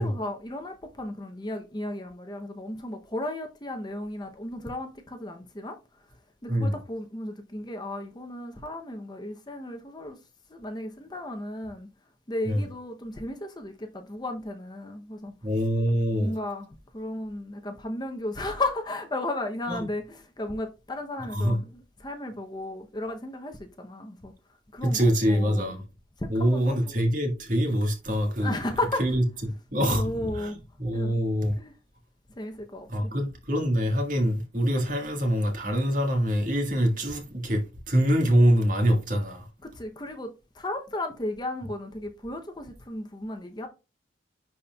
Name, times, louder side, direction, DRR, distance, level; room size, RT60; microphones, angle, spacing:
voice 1, 0.0-5.8 6.4-10.2 10.5-11.9 12.3-15.3 16.1-16.7 16.9-24.3 24.7-25.7 26.2-27.0 28.4-29.2 29.8-30.6 30.9-31.2 31.6-31.7 32.4-33.1 39.6-43.7, left 1 dB, 20° left, 0.7 m, -34 dB
voice 2, 15.4-16.3 19.7-19.8 21.3-21.6 24.8-25.8 26.3-28.6 29.0-29.2 29.7-30.5 30.8-31.5 32.9-37.6 37.9-39.4, equal, 45° right, 1.6 m, -24 dB
10.5 x 4.1 x 2.3 m
head